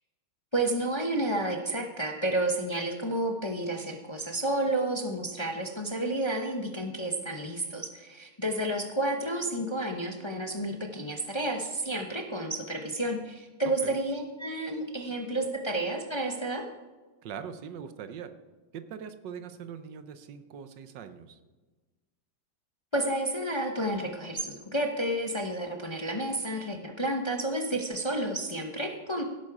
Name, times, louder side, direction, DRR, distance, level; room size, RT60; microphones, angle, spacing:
voice 1, 0.5-16.6 22.9-29.2, right 1 dB, 25° left, 3 dB, 0.6 m, -31 dB
voice 2, 17.2-18.3 18.7-21.4, right 7 dB, 70° right, 10 dB, 1.5 m, -42 dB
16.5 x 8.6 x 4.8 m, 1.3 s
omnidirectional pair, 2.1 m